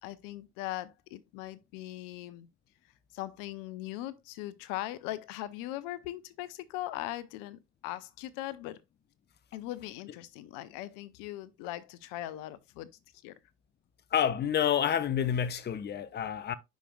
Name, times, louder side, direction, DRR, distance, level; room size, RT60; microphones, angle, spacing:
voice 1, 0.0-2.5 3.1-8.8 9.5-12.9 13.2-13.3, left 15 dB, 65° left, 0.7 m, -40 dB
voice 2, 14.1-16.5, left 9 dB, 30° left, 0.7 m, -28 dB
10.0 x 5.1 x 2.3 m
figure-of-eight pair, 55°, 36 cm